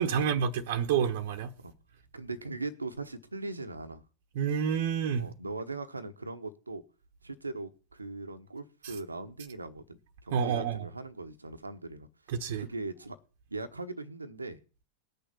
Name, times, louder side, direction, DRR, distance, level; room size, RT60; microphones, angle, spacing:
voice 1, 0.0-1.5 4.3-5.3 10.3-10.8 12.3-12.6, right 7 dB, 55° right, 1.1 m, -28 dB
voice 2, 2.1-4.0 5.2-6.8 7.2-13.2 13.5-14.6, right 3 dB, 80° right, 1.1 m, -40 dB
18.5 x 6.8 x 7.6 m
figure-of-eight pair, 90°, 0 cm